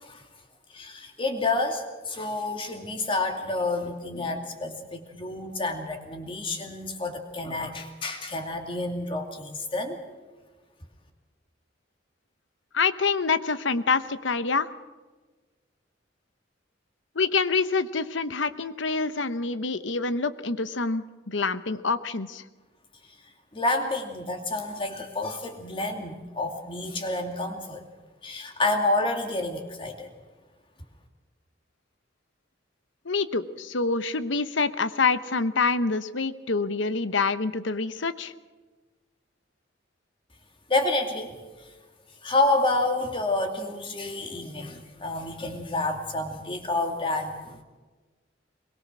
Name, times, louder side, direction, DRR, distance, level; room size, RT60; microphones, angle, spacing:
voice 1, 0.7-10.0 23.5-27.8 28.2-30.1 40.7-41.7 42.2-47.6, left 2 dB, 25° left, 4 dB, 2.5 m, -29 dB
voice 2, 12.7-14.7 17.1-22.4 33.0-38.3, left 4 dB, 80° left, 13 dB, 1.0 m, -26 dB
22.0 x 22.0 x 6.3 m, 1.3 s
head